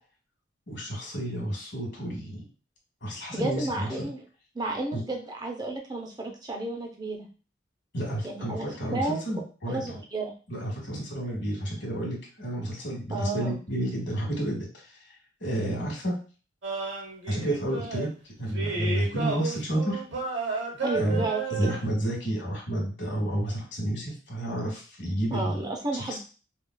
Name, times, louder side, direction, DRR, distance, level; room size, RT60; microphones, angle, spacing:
voice 1, 0.7-2.4 3.0-4.1 4.9-5.0 7.9-10.0 10.5-14.6 15.4-16.1 17.3-20.0 20.9-21.2 21.5-25.6 26.0-26.2, right 1 dB, 65° left, -1 dB, 1.2 m, -30 dB
voice 2, 3.3-4.2 4.5-7.3 8.2-10.3 13.1-13.6 20.8-21.7 25.3-26.2, right 2 dB, 20° right, 2 dB, 0.6 m, -32 dB
sound 1, 16.6-18.1 18.5-21.8, right 3 dB, 70° right, 0.9 m, -32 dB
4.7 x 2.4 x 2.2 m, 0.36 s
head